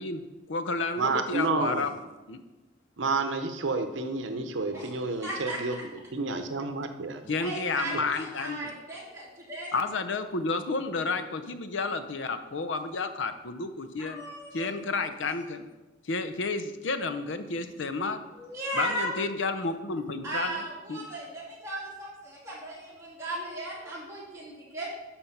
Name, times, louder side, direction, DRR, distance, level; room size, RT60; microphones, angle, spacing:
voice 1, 0.0-1.9 2.3-2.4 7.3-8.6 9.7-14.2 14.5-15.6 16.1-18.2 18.7-20.6 20.9-21.0, left 3 dB, 85° left, 10 dB, 0.7 m, -31 dB
voice 2, 1.0-1.9 3.0-7.2, right 3 dB, 90° right, 7 dB, 0.8 m, -30 dB
voice 3, 5.2-5.6 7.4-9.8 14.0-14.8 18.3-19.2 20.2-24.9, right 1 dB, 15° right, -7 dB, 3.2 m, -36 dB
12.0 x 4.4 x 5.8 m, 1.1 s
head